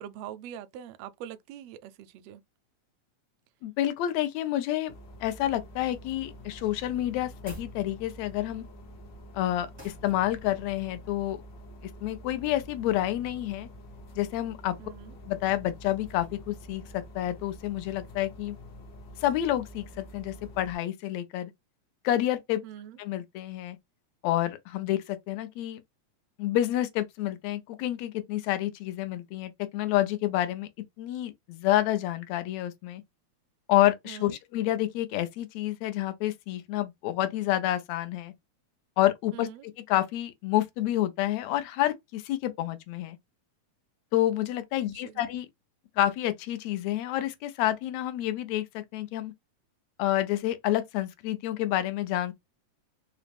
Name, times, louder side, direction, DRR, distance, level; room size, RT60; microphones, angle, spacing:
voice 1, 0.0-2.4 14.8-15.2 22.6-23.0 34.1-34.4 39.3-39.6 44.8-45.2, right 10 dB, 80° right, 1.5 m, -43 dB
voice 2, 3.6-4.9 5.2-8.7 9.3-11.4 12.0-13.7 14.2-14.7 15.3-16.8 17.2-18.6 19.2-21.5 22.0-22.6 23.0-23.8 24.2-25.8 26.4-30.7 31.0-33.0 33.7-38.3 39.0-39.5 39.9-43.2 44.1-45.5 46.0-49.3 50.0-52.3, left 13 dB, 80° left, 1.7 m, -29 dB
sound 1, 4.9-20.7, equal, 65° left, 1.1 m, -47 dB
sound 2, 7.4-7.8 9.8-10.1, right 1 dB, 35° right, 0.4 m, -45 dB
4.8 x 2.0 x 3.3 m
omnidirectional pair, 3.3 m